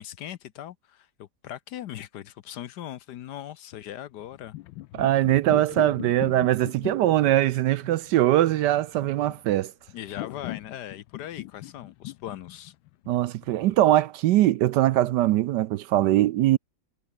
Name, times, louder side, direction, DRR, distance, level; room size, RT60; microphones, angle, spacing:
voice 1, 0.0-4.5 9.9-12.7, left 11 dB, 65° left, 1.2 m, -39 dB
sound 1, 4.2-13.9, left 17 dB, 85° left, 1.4 m, -40 dB
voice 2, 4.9-9.7 13.1-16.6, right 14 dB, 70° right, 1.1 m, -22 dB
omnidirectional pair, 2.1 m